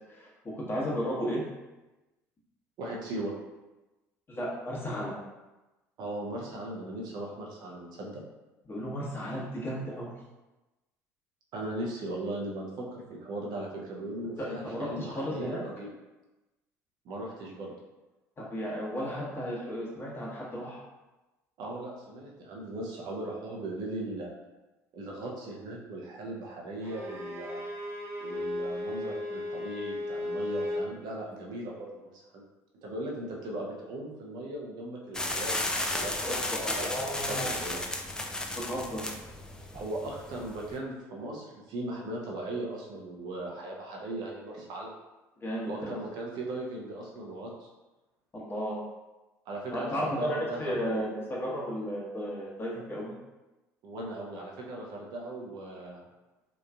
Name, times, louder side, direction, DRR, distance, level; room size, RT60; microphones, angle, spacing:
voice 1, 0.5-1.4 4.3-5.1 8.7-10.1 14.4-15.6 18.4-20.8 36.2-37.5 38.6-39.0 45.4-45.9 48.3-48.8 49.7-53.1, equal, 30° left, -5 dB, 1.1 m, -34 dB
voice 2, 2.8-3.3 6.0-8.2 11.5-15.9 17.0-17.7 21.6-24.3 24.9-27.6 28.2-32.4 32.8-37.8 39.7-44.9 45.6-47.7 49.5-51.1 53.8-56.0, right 1 dB, 60° right, -2 dB, 0.7 m, -38 dB
Bowed string instrument, 26.8-30.9, left 1 dB, 85° right, 1.0 m, -35 dB
sound 1, 35.1-40.7, left 1 dB, 10° left, 0.3 m, -34 dB
3.0 x 2.4 x 2.3 m, 1.1 s
hypercardioid pair, 65°, 8 cm